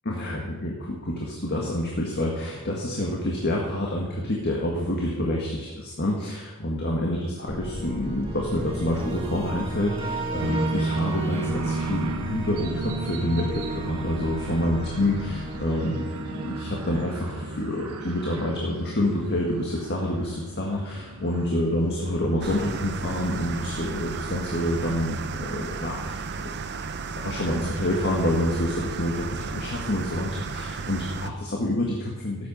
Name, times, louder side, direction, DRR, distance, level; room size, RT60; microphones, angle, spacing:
voice 1, 0.0-26.6 27.1-32.5, left 1 dB, 50° left, -1 dB, 1.7 m, -28 dB
sound 1, 7.5-17.7, right 1 dB, 25° right, 1.8 m, -34 dB
sound 2, 10.4-23.6, right 3 dB, 85° right, 1.2 m, -34 dB
sound 3, 22.4-31.3, right 4 dB, 50° right, 0.7 m, -34 dB
13.5 x 8.6 x 5.4 m, 1.2 s
head